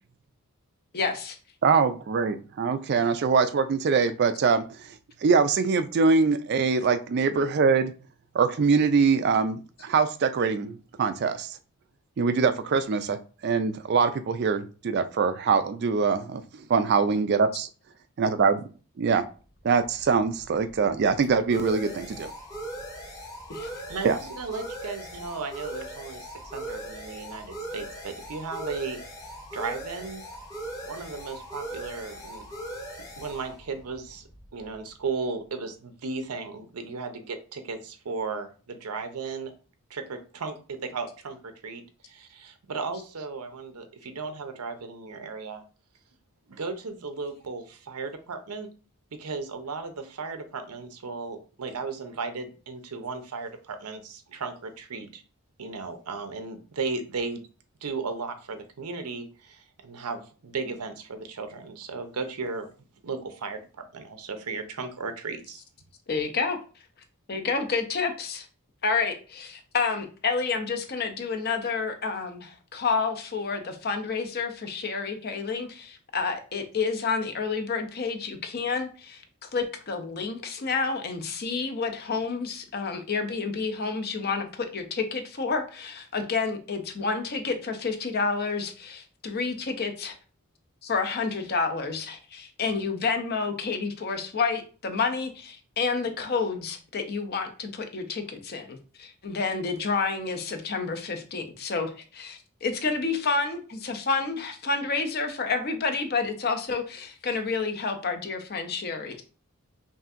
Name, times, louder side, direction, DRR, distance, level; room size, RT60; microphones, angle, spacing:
voice 1, 0.9-1.3 23.6-23.7 66.1-66.6 67.3-68.5 68.8-79.2 79.5-90.1 90.8-109.2, left 4 dB, 45° left, 6 dB, 0.6 m, -29 dB
voice 2, 1.6-4.9 5.2-7.9 8.3-11.6 12.2-16.2 16.7-17.7 18.2-18.6 19.0-19.3 19.6-22.3 24.0-24.2, right 5 dB, 45° right, 11 dB, 0.3 m, -23 dB
sound 1, 19.6-35.0, right 1 dB, 15° left, 0.9 m, -40 dB
voice 3, 23.9-29.0 29.5-30.2 30.9-32.5 33.2-39.5 39.9-45.6 46.5-48.7 49.1-55.2 55.6-57.4 57.8-62.7 63.0-65.6, right 4 dB, 85° right, 7 dB, 0.7 m, -35 dB
5.5 x 2.6 x 2.5 m, 0.37 s
head